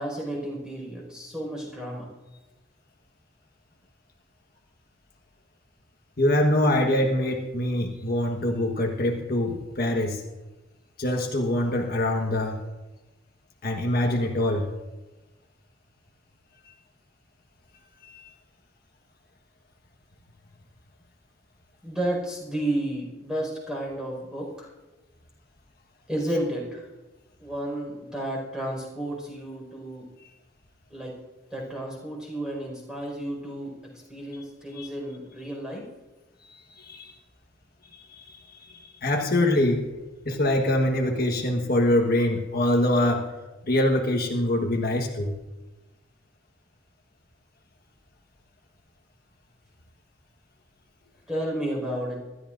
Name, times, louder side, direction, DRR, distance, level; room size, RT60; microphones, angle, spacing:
voice 1, 0.0-2.1 21.8-24.7 26.1-26.8 27.4-30.0 30.9-31.1 31.5-33.7 34.1-35.8 51.3-52.2, right 1 dB, 5° right, -2 dB, 5.0 m, -32 dB
voice 2, 6.2-10.2 11.0-12.6 13.6-14.7 16.7-16.8 18.0-18.3 34.8-34.9 36.5-37.2 38.1-39.8 40.2-43.3 43.7-45.3, left 1 dB, 50° left, 1 dB, 1.4 m, -24 dB
25.5 x 13.0 x 2.6 m, 1.1 s
head